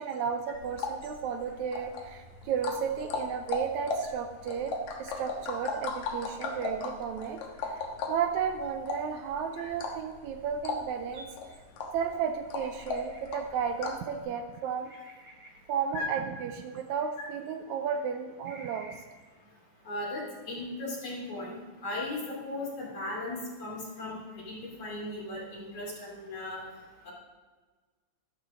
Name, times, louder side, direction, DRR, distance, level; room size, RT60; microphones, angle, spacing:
voice 1, 0.0-4.7 5.0-11.3 11.9-14.9 15.7-19.0, right 7 dB, 75° right, 6 dB, 1.9 m, -33 dB
sound 1, 0.5-14.1, left 3 dB, 70° left, 2.5 m, -37 dB
sound 2, 11.1-11.5 12.6-13.7 14.8-15.8 17.0-17.3 18.5-19.0, right 1 dB, 35° right, 2.6 m, -52 dB
voice 2, 19.9-21.6 21.8-26.6 27.0-27.1, left 2 dB, 50° left, -4 dB, 4.1 m, -37 dB
12.5 x 12.5 x 3.8 m, 1.4 s
omnidirectional pair, 3.6 m